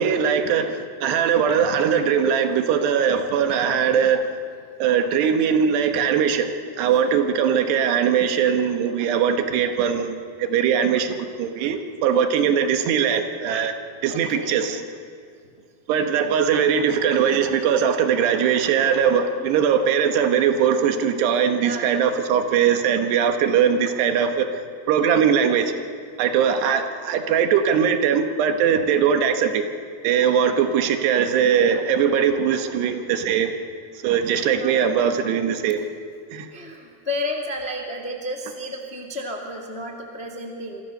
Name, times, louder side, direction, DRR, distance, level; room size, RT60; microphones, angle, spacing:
voice 1, 0.0-4.3 4.8-13.7 14.0-14.8 15.9-24.5 24.9-25.7 26.2-29.6 30.0-33.5 34.0-35.8 36.3-36.5, right 7 dB, 80° right, 7 dB, 3.4 m, -20 dB
voice 2, 14.1-14.8 21.6-21.9 34.6-34.9 36.5-40.8, left 1 dB, 30° left, 2 dB, 1.1 m, -32 dB
27.5 x 23.5 x 6.6 m, 2.2 s
omnidirectional pair, 4.8 m